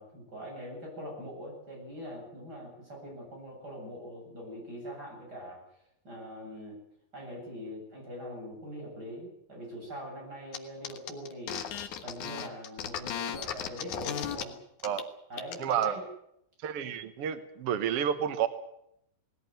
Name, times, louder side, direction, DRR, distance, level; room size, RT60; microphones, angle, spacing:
voice 1, 0.0-5.6 6.0-6.8 7.1-11.6 12.0-14.6 15.3-16.0, equal, 25° right, -1 dB, 8.4 m, -42 dB
sound 1, 10.5-10.6 10.8-14.4 14.8-15.0 15.3-15.9, left 9 dB, 60° left, 2.5 m, -36 dB
voice 2, 15.6-16.0 16.6-18.5, right 9 dB, 85° right, 10 dB, 1.2 m, -30 dB
20.0 x 16.5 x 9.3 m, 0.77 s
omnidirectional pair, 4.4 m